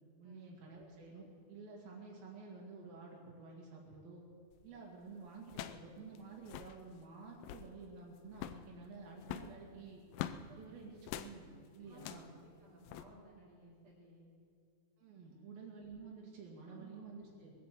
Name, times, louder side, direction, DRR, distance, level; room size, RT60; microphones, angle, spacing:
voice 1, 0.2-4.2 4.6-10.0 10.5-12.3 15.0-17.5, right 4 dB, 80° right, -3 dB, 3.8 m, -51 dB
sound 1, 4.5-4.8 5.5-5.9 6.2-6.3 6.4-6.8 7.3-7.7 8.3-8.7 9.2-10.4 11.0-11.3 11.9-12.3 12.9-13.0, left 12 dB, 80° left, 2.3 m, -44 dB
voice 2, 11.8-14.3 15.2-15.5 16.7-17.1, right 1 dB, 50° right, -8 dB, 3.7 m, -59 dB
20.5 x 9.1 x 7.6 m, 2.3 s
omnidirectional pair, 4.1 m